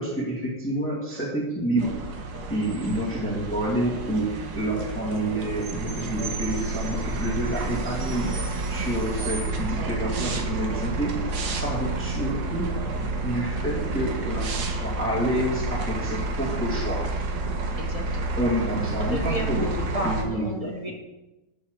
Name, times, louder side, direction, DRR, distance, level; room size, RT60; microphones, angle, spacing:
voice 1, 0.0-1.9 2.5-8.3 8.7-11.2 11.5-12.7 13.2-17.0 18.4-19.7 20.0-20.9, right 1 dB, 5° left, -5 dB, 1.7 m, -28 dB
sound 1, 1.8-20.2, right 3 dB, 55° right, 1.4 m, -30 dB
sound 2, 1.8-5.9 6.1-7.4 7.6-8.9 9.2-11.6 11.8-11.9 12.2-13.4, right 3 dB, 80° right, 2.4 m, -44 dB
voice 2, 17.8-18.4 19.0-20.9, left 1 dB, 60° left, -1 dB, 0.3 m, -32 dB
8.7 x 5.4 x 6.5 m, 1.0 s
omnidirectional pair, 2.3 m